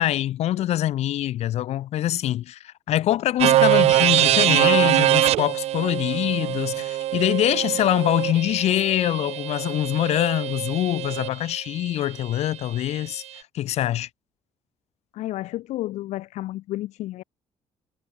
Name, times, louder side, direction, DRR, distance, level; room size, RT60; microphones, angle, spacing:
voice 1, 0.0-13.2 13.5-14.1, left 13 dB, 70° left, 3.1 m, -24 dB
sound 1, 3.4-11.3, right 14 dB, 65° right, 0.6 m, -22 dB
voice 2, 15.1-17.2, left 15 dB, 85° left, 1.7 m, -31 dB
cardioid pair, 155°, 12 cm